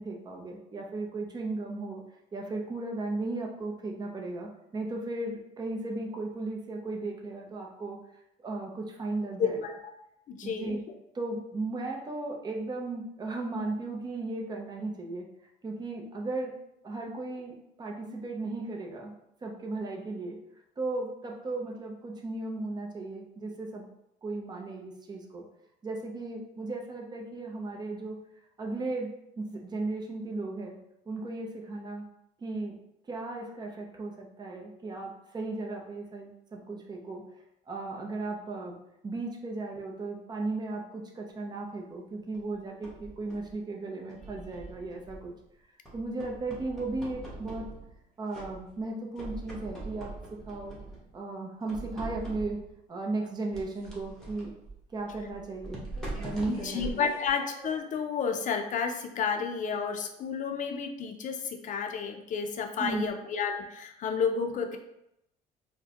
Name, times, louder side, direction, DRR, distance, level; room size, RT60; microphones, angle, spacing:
voice 1, 0.0-2.0 2.3-8.0 8.4-9.6 10.4-10.8 11.1-15.3 15.6-16.5 16.8-19.1 19.4-20.4 20.8-23.9 24.2-25.4 25.8-28.2 28.6-29.1 29.4-30.8 31.1-32.1 32.4-32.8 33.1-37.3 37.7-38.8 39.0-45.3 45.9-47.6 48.2-50.1 50.5-50.8 51.1-52.6 52.9-54.5 54.9-55.8 56.2-57.1 62.8-63.1, right 2 dB, 25° right, 0 dB, 0.7 m, -36 dB
voice 2, 9.4-9.9 10.3-10.8 56.5-64.8, left 6 dB, 50° left, 5 dB, 0.6 m, -31 dB
sound 1, 42.3-43.6 44.1-45.4 45.9-48.0 48.3-48.9 49.2-51.1 51.7-52.8 53.5-58.0, right 2 dB, 5° left, 1.2 m, -43 dB
4.7 x 2.2 x 2.9 m, 0.81 s
cardioid pair, 110°, 17 cm